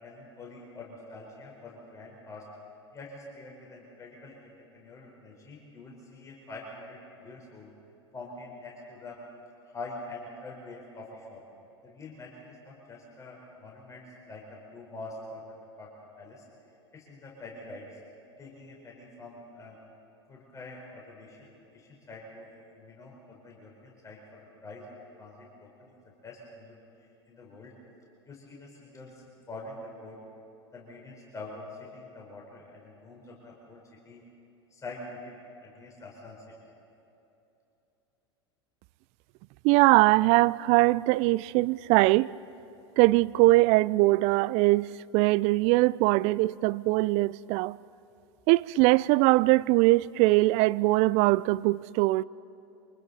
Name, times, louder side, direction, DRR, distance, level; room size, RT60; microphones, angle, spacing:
voice 1, 0.0-2.5 2.9-7.7 8.1-9.2 9.7-11.4 11.8-15.4 15.8-15.9 16.2-16.4 16.9-17.9 18.4-19.8 20.3-22.5 22.8-26.8 27.3-27.7 28.3-30.2 30.7-34.2 34.7-36.5, left 2 dB, 20° left, 4.5 m, -45 dB
voice 2, 39.6-42.3 43.0-47.8 48.5-52.2, right 21 dB, 50° right, 0.4 m, -22 dB
28.0 x 25.5 x 4.2 m
hypercardioid pair, 85°, 15 cm